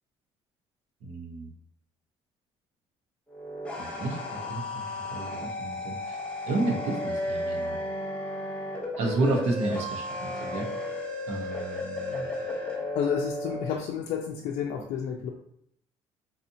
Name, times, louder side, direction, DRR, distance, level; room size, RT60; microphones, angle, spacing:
voice 1, 1.0-1.5 3.8-4.2 4.5-4.8 5.1-6.2 6.5-7.8 9.0-10.7 11.3-12.3, right 2 dB, 65° right, 1 dB, 0.9 m, -31 dB
sound 1, 3.3-13.7, left 1 dB, 10° left, 0.8 m, -34 dB
voice 2, 12.9-15.3, left 8 dB, 75° left, 0 dB, 0.4 m, -31 dB
4.0 x 2.8 x 2.6 m, 0.71 s
cardioid pair, 140°, 12 cm